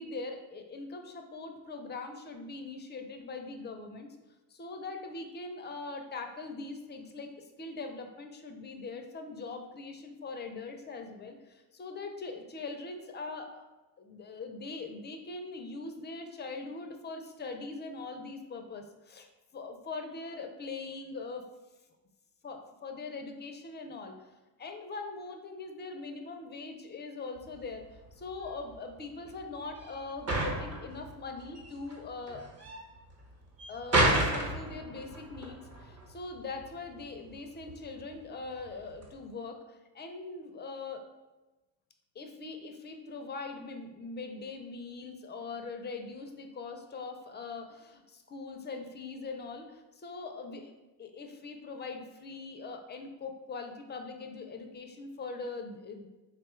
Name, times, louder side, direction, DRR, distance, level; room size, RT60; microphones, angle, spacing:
voice 1, 0.0-4.1 4.5-13.6 14.0-21.4 22.4-24.1 24.6-27.8 28.1-32.4 33.7-41.1 42.2-50.7 51.0-56.1, left 3 dB, 25° left, 5 dB, 0.4 m, -42 dB
sound 1, 27.4-39.3, right 1 dB, 35° right, 1.0 m, -33 dB
3.5 x 2.3 x 4.3 m, 1.1 s
cardioid pair, 105°, 45 cm